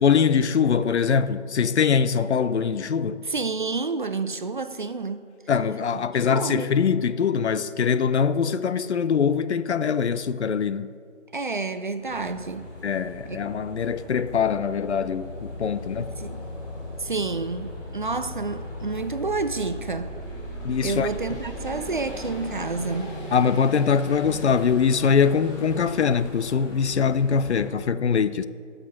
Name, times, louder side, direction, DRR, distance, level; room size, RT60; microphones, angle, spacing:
voice 1, 0.0-3.2 5.5-10.9 12.8-16.1 20.6-21.1 23.3-28.4, left 6 dB, 65° left, 0.6 m, -23 dB
voice 2, 3.2-5.2 5.9-6.0 6.3-6.7 11.3-12.7 13.3-13.4 15.7-16.4 17.0-20.1 20.8-23.1, right 4 dB, 45° right, 0.4 m, -29 dB
sound 1, 12.0-27.7, left 1 dB, 25° left, 2.6 m, -37 dB
10.5 x 6.7 x 6.0 m
figure-of-eight pair, 160°, 37 cm